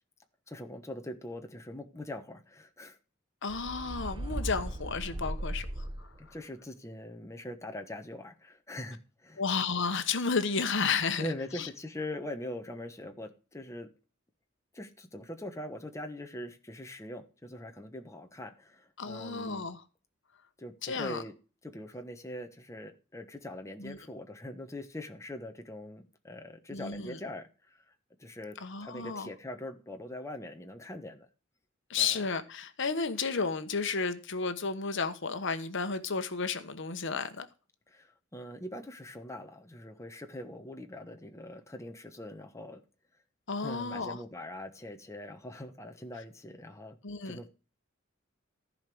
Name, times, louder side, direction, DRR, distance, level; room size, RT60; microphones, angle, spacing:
voice 1, 0.5-3.0 6.2-9.4 11.2-13.9 14.7-19.6 20.6-21.3 21.6-27.8 28.2-31.3 32.0-32.2 37.9-42.8 43.6-47.0 47.2-47.5, left 1 dB, 15° left, 1.2 m, -42 dB
voice 2, 3.4-6.1 9.4-11.7 19.0-19.8 20.8-21.2 23.8-24.0 26.7-27.2 28.6-29.3 31.9-37.5 43.5-44.2 47.0-47.4, left 5 dB, 65° left, 1.1 m, -32 dB
sound 1, 3.5-6.3, right 1 dB, 25° right, 0.9 m, -37 dB
14.5 x 5.2 x 6.1 m
head